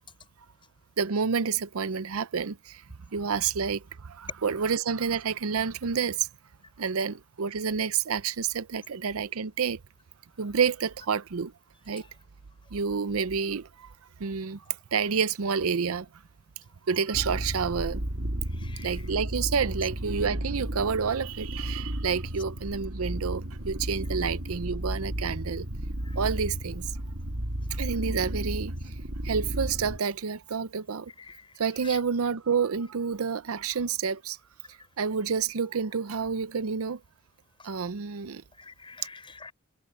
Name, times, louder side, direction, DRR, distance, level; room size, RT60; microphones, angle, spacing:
voice 1, 1.0-2.8 3.1-6.3 6.8-9.8 10.4-11.5 11.9-12.0 12.7-13.9 14.2-14.6 14.9-16.1 16.9-18.0 18.8-25.7 26.2-26.8 27.7-28.9 29.2-31.1 31.6-34.4 35.0-37.0 37.6-38.4, right 6 dB, 90° right, 0.6 m, -29 dB
sound 1, 17.1-30.0, right 1 dB, 65° right, 2.0 m, -33 dB
voice 2, 18.5-19.1 24.2-24.3 26.0-26.2 31.2-32.0 37.6-37.7 38.6-39.5, left 4 dB, 25° left, 5.7 m, -48 dB
head